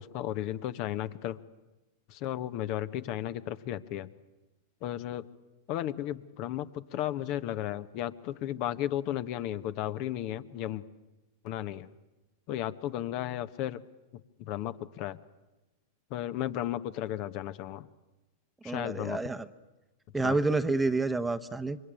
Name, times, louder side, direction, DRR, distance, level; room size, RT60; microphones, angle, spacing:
voice 1, 0.0-1.4 2.1-4.1 4.8-5.3 5.7-10.8 11.4-11.9 12.5-13.8 14.4-15.2 16.1-17.9 18.6-19.2 20.1-20.4, left 12 dB, 50° left, 13 dB, 1.2 m, -34 dB
voice 2, 18.6-19.4 20.1-21.8, right 3 dB, 10° right, 11 dB, 1.0 m, -29 dB
26.0 x 23.0 x 9.1 m, 1.1 s
hypercardioid pair, 100°, 0 cm